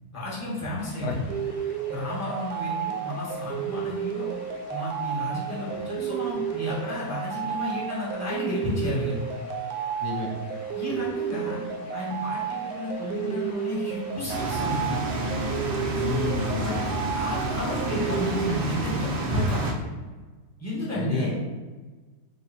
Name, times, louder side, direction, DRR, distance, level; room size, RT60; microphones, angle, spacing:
voice 1, 0.1-1.2 1.9-4.3 4.7-9.1 10.7-11.6 11.9-15.0 16.6-16.7 17.1-19.9 20.6-21.4, left 1 dB, 10° left, -6 dB, 1.1 m, -31 dB
sound 1, 0.8-19.8, left 2 dB, 45° left, 0.9 m, -48 dB
sound 2, 1.3-18.6, right 8 dB, 75° right, 1.1 m, -32 dB
voice 2, 10.0-10.3 15.9-16.9 21.0-21.3, left 4 dB, 75° left, 0 dB, 1.1 m, -30 dB
sound 3, 14.3-19.7, right 2 dB, 60° right, 0.5 m, -30 dB
4.0 x 2.9 x 4.1 m, 1.3 s
omnidirectional pair, 1.7 m